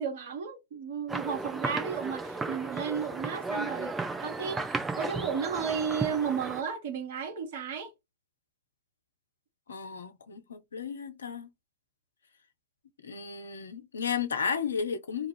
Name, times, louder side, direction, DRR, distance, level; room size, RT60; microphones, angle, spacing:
voice 1, 0.0-7.9, right 6 dB, 55° right, 0.9 m, -33 dB
sound 1, 1.1-6.6, right 3 dB, 10° right, 0.5 m, -34 dB
voice 2, 9.7-11.5 13.0-15.3, left 6 dB, 70° left, 0.5 m, -33 dB
2.3 x 2.3 x 3.2 m
figure-of-eight pair, 90°, 0 cm